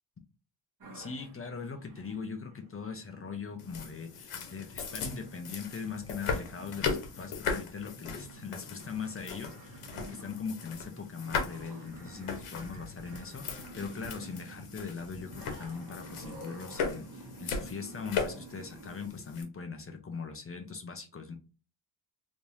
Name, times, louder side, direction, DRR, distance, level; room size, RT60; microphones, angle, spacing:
sound 1, 0.8-19.1, right 1 dB, 40° right, 1.3 m, -51 dB
voice 1, 0.9-21.3, left 5 dB, 25° left, 5 dB, 0.6 m, -40 dB
sound 2, 3.6-19.4, left 5 dB, 80° left, 1.1 m, -38 dB
3.4 x 3.1 x 2.6 m, 0.34 s
wide cardioid pair, 135°, 50 cm